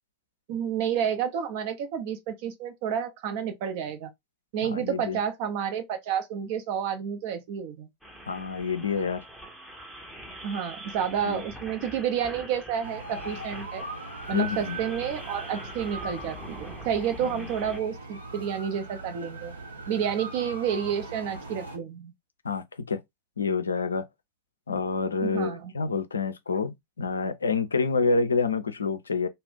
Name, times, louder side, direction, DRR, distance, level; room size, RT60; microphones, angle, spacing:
voice 1, 0.5-4.1 4.5-7.9 10.4-13.9 14.3-19.6 19.9-22.1 25.2-25.7, right 8 dB, 50° right, 0.6 m, -30 dB
voice 2, 4.6-5.2 8.3-9.2 11.2-11.4 14.3-14.8 17.2-17.5 22.4-23.0 23.4-24.0 24.7-29.3, left 4 dB, 75° left, 0.4 m, -28 dB
sound 1, 8.0-17.8, equal, ahead, 0.7 m, -44 dB
sound 2, 12.8-21.8, right 2 dB, 80° right, 0.9 m, -40 dB
2.4 x 2.1 x 3.5 m
figure-of-eight pair, 90°, 0 cm